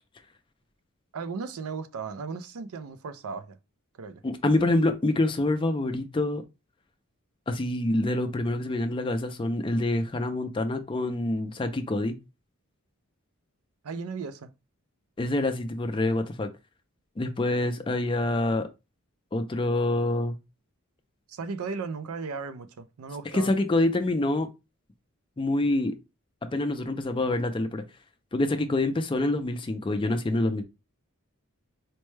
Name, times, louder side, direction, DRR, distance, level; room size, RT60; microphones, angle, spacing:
voice 1, 1.1-3.6 4.0-4.2 13.8-14.5 21.3-23.5, right 5 dB, 75° right, 0.4 m, -36 dB
voice 2, 4.2-6.4 7.5-12.2 15.2-16.5 17.2-18.7 19.3-20.4 23.3-24.5 25.4-25.9 26.4-27.8 28.3-30.6, left 2 dB, 20° left, 0.4 m, -26 dB
4.3 x 2.1 x 3.1 m
head